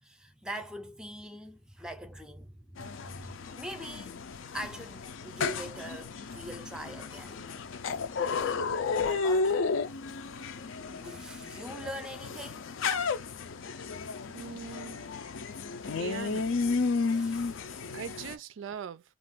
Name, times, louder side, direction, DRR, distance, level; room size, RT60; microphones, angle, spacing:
voice 1, 0.0-4.2 4.5-7.4 9.0-9.8 10.9-12.7 17.1-18.0, right 1 dB, 5° right, 0.5 m, -43 dB
sound 1, 2.8-18.3, left 4 dB, 75° left, 0.5 m, -33 dB
voice 2, 14.3-15.0 16.0-16.6 17.9-19.0, right 7 dB, 70° right, 0.3 m, -41 dB
2.5 x 2.4 x 3.4 m
head